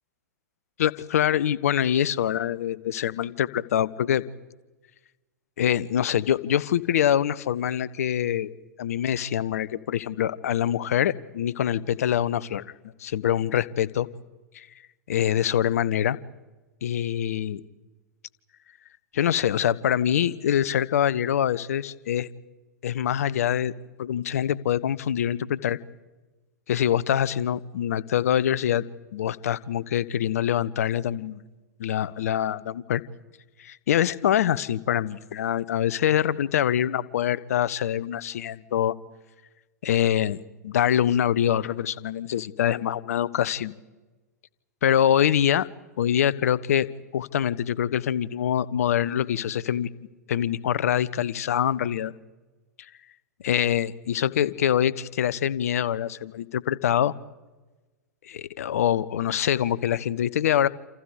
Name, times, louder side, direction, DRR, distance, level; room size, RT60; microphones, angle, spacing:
voice 1, 0.8-4.2 5.6-8.5 8.8-12.6 13.0-14.1 14.5-14.7 15.1-16.2 16.8-17.6 19.1-22.3 22.8-23.7 24.0-25.8 26.7-28.8 29.1-31.4 31.8-33.0 33.6-38.9 39.8-43.7 44.8-45.7 46.0-46.9 47.1-49.9 50.3-52.1 53.4-57.1 58.2-60.7, left 10 dB, 60° left, 18 dB, 1.1 m, -24 dB
28.5 x 28.5 x 5.0 m, 1.2 s
figure-of-eight pair, 100°, 9 cm